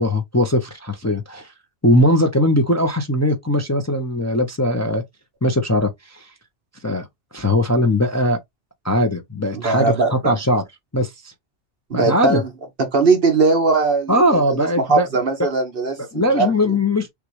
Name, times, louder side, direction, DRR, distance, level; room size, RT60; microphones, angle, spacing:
voice 1, 0.0-1.5 1.8-5.0 5.4-6.3 6.8-7.0 7.3-8.4 8.8-10.6 10.9-11.3 11.9-12.4 14.1-15.1 15.4-15.5 16.1-17.1, left 1 dB, 15° left, 0.7 m, -19 dB
voice 2, 9.5-10.4 11.9-12.5 12.8-16.5, right 3 dB, 55° right, 1.4 m, -20 dB
6.5 x 2.5 x 3.0 m
omnidirectional pair, 1.2 m